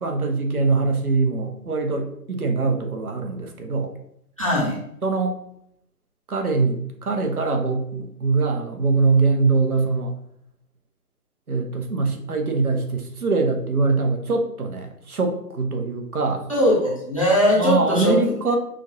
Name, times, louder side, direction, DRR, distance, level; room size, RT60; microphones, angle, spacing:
voice 1, 0.0-3.9 5.0-5.4 6.3-10.1 11.5-16.4 17.6-18.6, right 3 dB, 65° right, 4 dB, 1.0 m, -23 dB
voice 2, 4.4-4.8 16.5-18.2, equal, 20° left, -4 dB, 0.6 m, -20 dB
6.1 x 2.5 x 2.7 m, 0.72 s
figure-of-eight pair, 150°, 48 cm